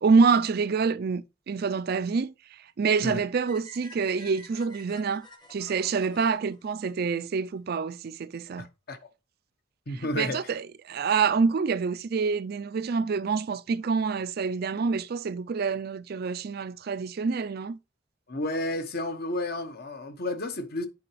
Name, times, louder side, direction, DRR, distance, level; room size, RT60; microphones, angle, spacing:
voice 1, 0.0-8.7 9.9-17.8, right 5 dB, 55° right, 0.4 m, -27 dB
sound 1, 3.5-7.6, left 1 dB, 25° left, 1.1 m, -50 dB
voice 2, 8.6-9.0 9.9-10.5 18.3-20.9, left 1 dB, 55° left, 1.0 m, -32 dB
8.5 x 4.8 x 3.2 m
head